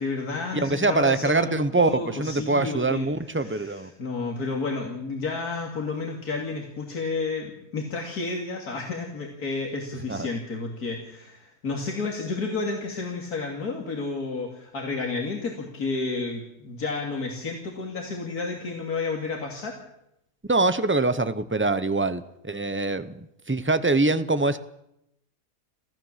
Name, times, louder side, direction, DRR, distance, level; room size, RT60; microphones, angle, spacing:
voice 1, 0.0-19.8, left 3 dB, 85° left, 1 dB, 3.0 m, -31 dB
voice 2, 0.5-3.9 10.1-10.3 20.5-24.6, right 3 dB, 10° right, 12 dB, 0.6 m, -24 dB
26.0 x 15.0 x 7.4 m, 0.83 s
omnidirectional pair, 1.6 m